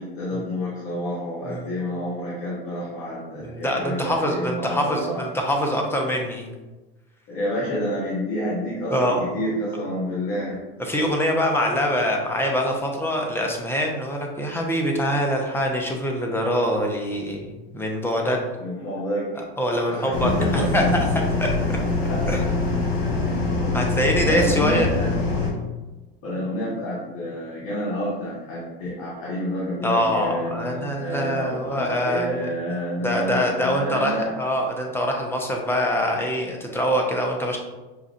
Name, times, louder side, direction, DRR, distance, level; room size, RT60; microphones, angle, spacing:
voice 1, 0.0-5.3 7.3-10.6 18.6-19.3 19.9-21.2 21.6-22.2 23.6-23.7 24.2-25.1 26.2-34.3, equal, 50° left, -7 dB, 1.4 m, -29 dB
voice 2, 1.5-1.8 3.4-6.5 8.9-9.2 10.8-18.4 19.3-20.8 21.4-21.5 22.3-22.4 23.4-23.5 23.7-24.9 29.8-32.5 33.0-37.6, equal, 10° left, 1 dB, 0.7 m, -24 dB
sound 1, 20.1-25.5, left 3 dB, 85° left, 1.1 m, -24 dB
5.6 x 2.4 x 2.5 m, 1.1 s
hypercardioid pair, 95°, 30 cm